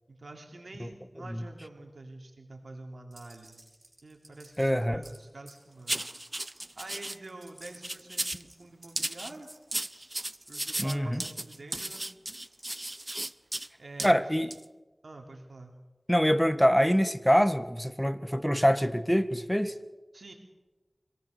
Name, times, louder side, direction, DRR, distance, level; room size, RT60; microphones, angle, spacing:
voice 1, 0.1-3.6 4.0-6.1 6.8-9.5 10.5-12.0 13.8-14.2 15.0-15.7 20.1-20.3, right 2 dB, 85° right, 3 dB, 3.0 m, -47 dB
sound 1, 3.1-10.4 11.1-13.5, right 2 dB, 45° right, 7.7 m, -56 dB
voice 2, 4.6-5.0 10.8-11.2 14.0-14.5 16.1-19.7, equal, 5° left, 11 dB, 1.5 m, -25 dB
sound 2, 5.9-7.2 7.6-8.5 9.0-13.7 14.0-14.1 14.5-14.6, right 1 dB, 30° right, 0.7 m, -35 dB
25.5 x 18.5 x 6.6 m, 1.2 s
wide cardioid pair, 40°, 0 cm